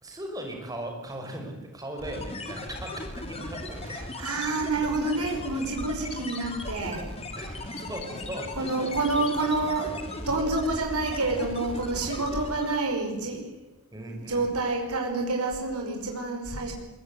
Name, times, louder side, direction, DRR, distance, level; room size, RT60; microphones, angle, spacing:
voice 1, 0.0-4.4 7.4-9.2 13.9-14.5, right 1 dB, 15° right, 3 dB, 5.8 m, -39 dB
sound 1, 2.0-12.9, left 2 dB, 25° left, 3.0 m, -37 dB
voice 2, 3.8-7.1 8.6-13.5 14.1-16.7, right 2 dB, 90° right, 2 dB, 5.4 m, -28 dB
22.5 x 22.0 x 9.4 m, 0.98 s
head